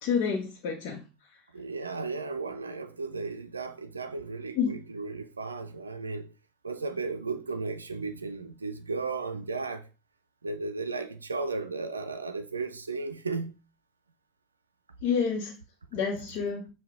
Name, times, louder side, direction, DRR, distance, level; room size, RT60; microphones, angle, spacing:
voice 1, 0.0-1.0 4.6-4.7 15.0-15.5 15.9-16.7, left 6 dB, 55° left, 0.8 m, -28 dB
voice 2, 1.5-6.3 6.6-9.9 10.4-13.6, right 3 dB, 85° right, 0.4 m, -35 dB
5.6 x 2.3 x 3.5 m
figure-of-eight pair, 75°, 0 cm